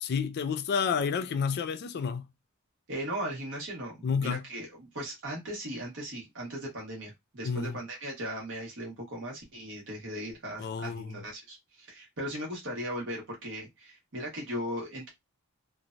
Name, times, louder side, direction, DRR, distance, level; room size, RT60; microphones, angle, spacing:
voice 1, 0.0-2.3 4.0-4.4 7.4-7.8 10.6-11.2, left 6 dB, 50° left, 0.3 m, -30 dB
voice 2, 2.9-15.1, equal, 60° right, 1.3 m, -38 dB
3.0 x 2.2 x 2.5 m
head